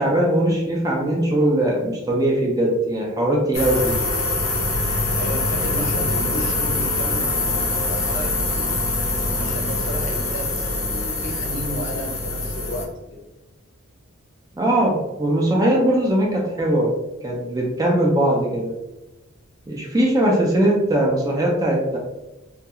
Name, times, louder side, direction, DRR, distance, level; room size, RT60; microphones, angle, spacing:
voice 1, 0.0-4.0 14.6-16.9 17.2-18.7 19.7-22.0, right 1 dB, 15° right, -2 dB, 0.3 m, -20 dB
sound 1, 3.5-12.8, left 2 dB, 85° left, 1.0 m, -24 dB
voice 2, 5.2-8.9 9.3-13.3, equal, 60° left, -1 dB, 0.7 m, -33 dB
2.3 x 2.2 x 2.8 m, 1.0 s
head